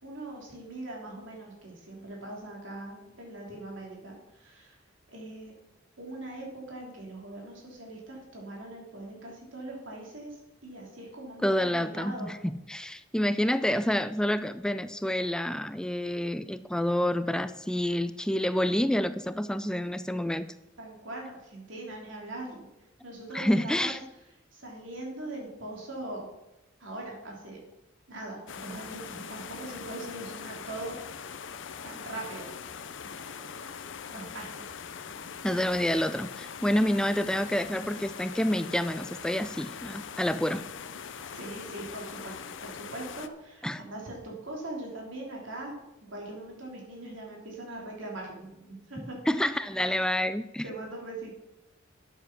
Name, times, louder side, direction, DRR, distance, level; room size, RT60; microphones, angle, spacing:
voice 1, 0.0-4.8 5.1-5.5 6.0-12.3 20.8-22.7 23.0-24.0 24.5-26.3 26.8-27.6 28.1-31.0 31.2-31.5 31.8-32.5 33.0-33.7 34.1-34.7 41.3-42.3 42.6-45.8 46.1-49.2 50.6-51.3, right 2 dB, 75° right, -1 dB, 3.1 m, -41 dB
voice 2, 11.4-20.5 23.3-24.0 35.4-40.7 43.6-43.8 49.3-50.6, left 1 dB, 5° left, 12 dB, 0.3 m, -28 dB
sound 1, 28.5-43.3, left 6 dB, 70° left, 0.6 m, -42 dB
9.6 x 7.3 x 6.0 m, 0.90 s
head